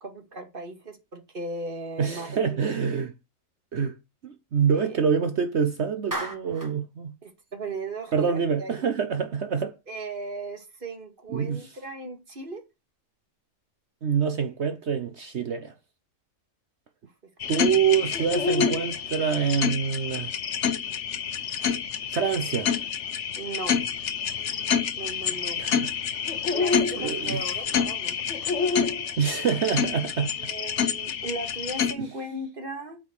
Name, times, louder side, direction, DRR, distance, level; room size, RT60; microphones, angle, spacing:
voice 1, 0.0-2.6 4.7-5.0 7.2-8.9 9.9-12.6 17.4-18.0 23.4-23.8 25.0-25.6 26.5-28.9 29.4-29.5 30.4-33.0, right 2 dB, 40° right, 2.2 m, -37 dB
voice 2, 2.0-3.1 3.7-3.9 4.2-7.1 8.1-9.7 11.3-11.6 14.0-15.7 17.5-20.3 22.1-22.7 25.6-25.9 27.0-27.4 29.2-30.3 32.0-32.1, right 7 dB, 55° right, 1.2 m, -26 dB
Clapping, 6.1-6.8, right 1 dB, 15° right, 1.8 m, -33 dB
sound 1, 17.4-31.9, left 7 dB, 60° left, 1.1 m, -28 dB
8.9 x 5.1 x 6.5 m
omnidirectional pair, 1.4 m